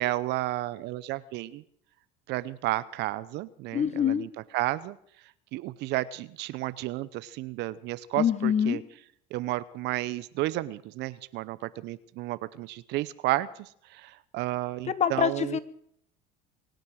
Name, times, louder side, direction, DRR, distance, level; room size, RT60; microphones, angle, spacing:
voice 1, 0.0-1.6 2.3-4.3 4.5-5.0 5.5-8.8 9.3-15.6, right 17 dB, 60° right, 16 dB, 0.7 m, -32 dB
voice 2, 3.7-4.3 8.2-8.8 14.9-15.6, left 8 dB, 35° left, 14 dB, 1.4 m, -25 dB
24.5 x 9.2 x 6.4 m, 0.68 s
supercardioid pair, 100°, 20 cm